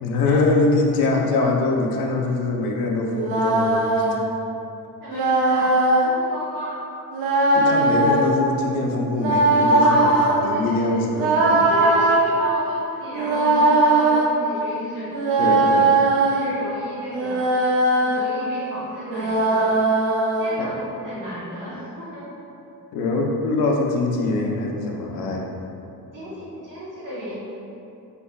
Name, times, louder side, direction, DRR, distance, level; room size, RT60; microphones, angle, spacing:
voice 1, 0.0-4.1 7.5-11.7 15.4-16.0 20.6-20.7 22.9-25.5, left 2 dB, 70° left, 0 dB, 0.6 m, -23 dB
sound 1, 3.1-4.2 5.1-6.1 7.1-8.4 9.1-10.4 11.1-12.2 13.1-14.3 15.1-16.5 17.1-18.2 19.1-20.5, right 2 dB, 80° right, 0.6 m, -19 dB
voice 2, 5.0-5.7 6.0-6.8 9.8-11.0 11.6-15.1 16.2-17.5 17.9-19.8 20.4-22.3 26.1-27.3, equal, 60° right, -9 dB, 1.2 m, -32 dB
4.3 x 3.4 x 2.3 m, 2.8 s
cardioid pair, 165°, 36 cm